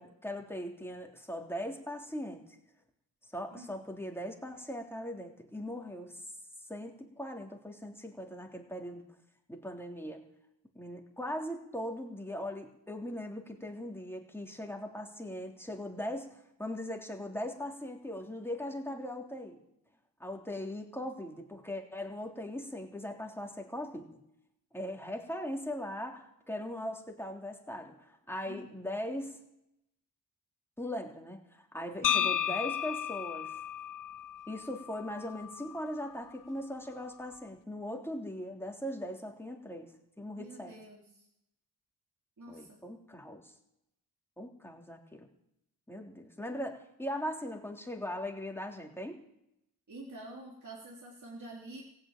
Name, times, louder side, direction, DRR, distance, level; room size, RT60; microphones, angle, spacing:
voice 1, 0.0-2.4 3.3-6.2 6.7-9.0 9.5-10.2 10.7-19.6 20.2-24.2 24.7-29.4 30.8-33.6 34.5-40.7 42.5-43.5 44.4-45.3 45.9-49.2, left 1 dB, 5° left, 1 dB, 3.3 m, -40 dB
voice 2, 3.5-3.8 28.5-28.8 32.0-32.3 40.4-41.3 42.4-42.8 49.9-51.8, right 1 dB, 45° right, -3 dB, 3.7 m, -47 dB
sound 1, 32.0-36.1, left 10 dB, 50° left, 0.5 m, -34 dB
15.5 x 9.2 x 9.0 m, 0.81 s
cardioid pair, 55°, 42 cm